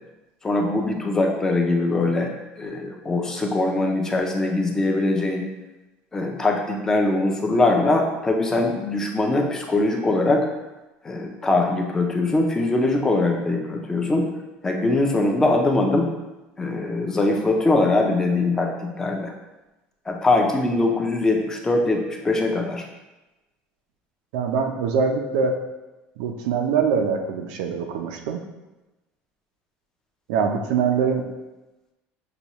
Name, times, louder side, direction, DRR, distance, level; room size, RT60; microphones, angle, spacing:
voice 1, 0.4-2.3 2.6-5.5 6.1-10.5 11.0-14.3 14.6-16.1 16.6-19.3 20.1-22.8, left 2 dB, 10° left, 1 dB, 0.5 m, -22 dB
voice 2, 24.3-25.6 26.2-28.4 30.3-31.3, right 6 dB, 90° right, 4 dB, 0.6 m, -23 dB
6.7 x 2.3 x 3.0 m, 1.1 s
cardioid pair, 155°, 4 cm